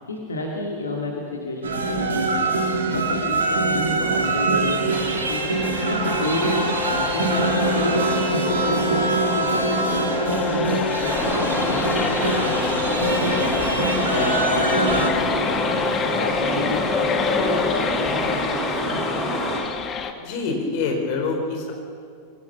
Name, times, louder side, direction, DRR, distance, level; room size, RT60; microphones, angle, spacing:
voice 1, 0.1-2.6 2.9-19.1, left 2 dB, 75° left, 0 dB, 2.6 m, -31 dB
sound 1, 1.6-15.1, right 3 dB, 70° right, 2.2 m, -24 dB
sound 2, 4.9-20.1, left 6 dB, 25° left, 1.6 m, -27 dB
sound 3, 11.1-19.6, equal, ahead, 6.8 m, -27 dB
voice 2, 20.2-21.7, left 4 dB, 45° left, 2 dB, 4.9 m, -26 dB
23.5 x 16.5 x 7.0 m, 2.5 s
figure-of-eight pair, 90°, 0 cm